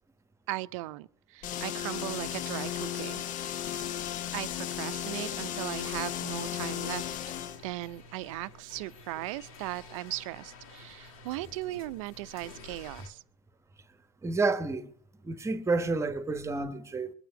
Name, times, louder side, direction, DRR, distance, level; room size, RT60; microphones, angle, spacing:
voice 1, 0.5-3.7 4.3-7.2 7.6-13.2, right 18 dB, 65° right, 0.6 m, -38 dB
sound 1, 1.4-7.6, left 10 dB, 45° left, 0.9 m, -35 dB
sound 2, 6.9-13.1, left 4 dB, 70° left, 3.0 m, -51 dB
voice 2, 14.2-14.8 15.2-17.1, right 3 dB, 15° right, 1.1 m, -29 dB
21.5 x 9.1 x 5.2 m
hypercardioid pair, 90°, 18 cm